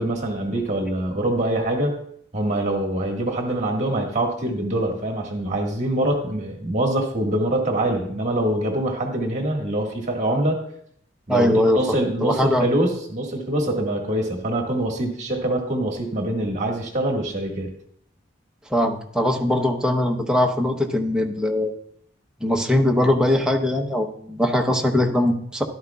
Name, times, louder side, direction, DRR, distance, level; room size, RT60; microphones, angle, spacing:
voice 1, 0.0-2.0 2.3-10.6 11.3-17.7, right 1 dB, 35° right, 1 dB, 1.7 m, -24 dB
voice 2, 11.3-11.8 12.2-12.7 18.7-21.7 22.4-25.6, left 1 dB, 5° right, 2 dB, 0.8 m, -21 dB
13.0 x 11.5 x 2.3 m, 0.67 s
head